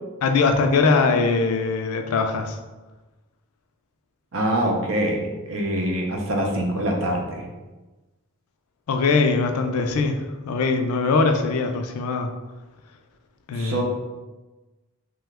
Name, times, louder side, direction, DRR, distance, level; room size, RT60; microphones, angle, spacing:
voice 1, 0.2-2.6 8.9-12.3 13.5-13.8, left 4 dB, 80° left, 5 dB, 0.4 m, -21 dB
voice 2, 4.3-7.4 13.5-13.8, right 1 dB, 65° right, 0 dB, 0.6 m, -24 dB
2.9 x 2.2 x 3.3 m, 1.2 s
head